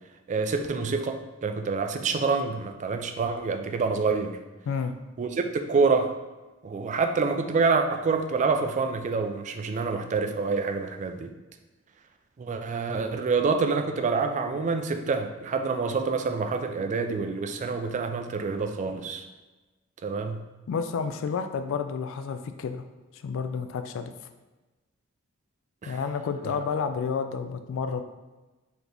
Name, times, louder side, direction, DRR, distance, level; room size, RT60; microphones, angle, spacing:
voice 1, 0.3-4.4 5.2-6.1 6.6-11.3 12.4-19.3 20.0-20.4 25.8-26.0 26.4-26.6, right 4 dB, 35° right, 6 dB, 0.3 m, -27 dB
voice 2, 20.7-22.8 23.2-24.1 25.9-28.0, left 6 dB, 65° left, 8 dB, 0.3 m, -30 dB
4.2 x 2.9 x 3.3 m, 1.2 s
head